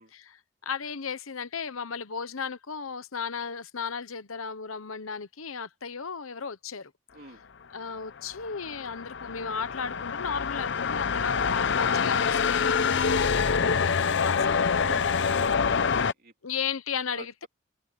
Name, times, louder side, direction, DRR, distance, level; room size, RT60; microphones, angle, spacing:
voice 1, 0.1-6.9 7.7-14.5 16.4-17.5, left 6 dB, 90° left, 1.0 m, -35 dB
sound 1, 8.2-16.1, left 6 dB, 60° left, 0.7 m, -26 dB
voice 2, 14.7-15.6 15.9-16.3 17.1-17.5, right 3 dB, 50° right, 3.2 m, -47 dB
head